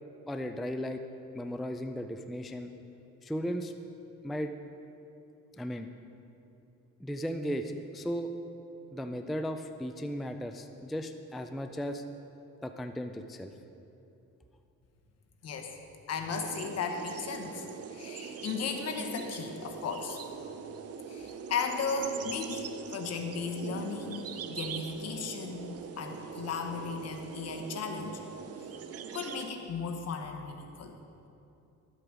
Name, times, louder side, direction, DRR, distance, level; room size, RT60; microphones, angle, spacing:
voice 1, 0.3-1.0 1.3-2.7 3.2-3.7 4.2-4.5 5.6-5.9 7.0-8.3 8.9-12.0 12.6-13.5, equal, ahead, 6 dB, 0.3 m, -36 dB
voice 2, 15.4-15.8 16.1-17.7 17.9-20.2 21.1-28.2 28.6-28.7 29.1-30.9, left 5 dB, 55° left, 4 dB, 1.1 m, -36 dB
sound 1, 16.3-29.5, right 7 dB, 55° right, 0.6 m, -42 dB
12.0 x 7.8 x 4.9 m, 2.8 s
cardioid pair, 130°, 30 cm